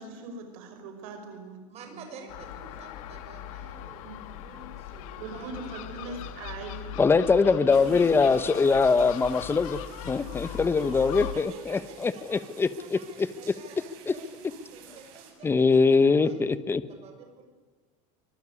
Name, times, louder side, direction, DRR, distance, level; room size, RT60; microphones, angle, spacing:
voice 1, 0.0-2.0 4.0-4.3 5.2-6.9 7.6-8.4, right 3 dB, 80° right, 5 dB, 5.5 m, -41 dB
voice 2, 1.7-6.3 10.8-11.1 11.3-16.4 16.9-17.5, right 5 dB, 35° right, 4 dB, 7.2 m, -49 dB
Gull seagull, 2.3-11.3, left 11 dB, 80° left, 2.5 m, -40 dB
voice 3, 7.0-9.8 10.0-13.0 14.1-14.2 15.4-16.8, left 4 dB, 15° left, 14 dB, 1.0 m, -22 dB
sound 1, 7.7-15.3, right 8 dB, 60° right, 6.7 m, -52 dB
24.0 x 21.5 x 9.8 m, 1.4 s
cardioid pair, 155°, 18 cm